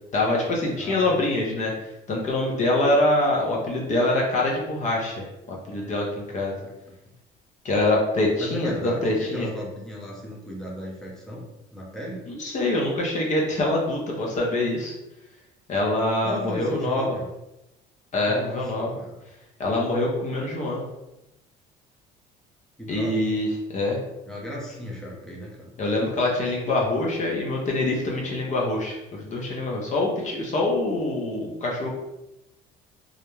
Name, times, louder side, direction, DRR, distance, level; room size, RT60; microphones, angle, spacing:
voice 1, 0.1-1.7 2.1-6.6 7.6-9.5 12.3-14.9 15.7-17.2 18.1-19.0 19.6-20.9 22.9-24.0 25.8-31.9, left 2 dB, 40° left, -2 dB, 0.6 m, -25 dB
voice 2, 0.8-1.2 8.4-11.4 11.7-12.3 16.2-17.3 18.1-19.2 22.8-23.3 24.2-25.7, left 1 dB, 5° left, -4 dB, 0.6 m, -35 dB
2.4 x 2.1 x 3.0 m, 0.93 s
cardioid pair, 105°, 18 cm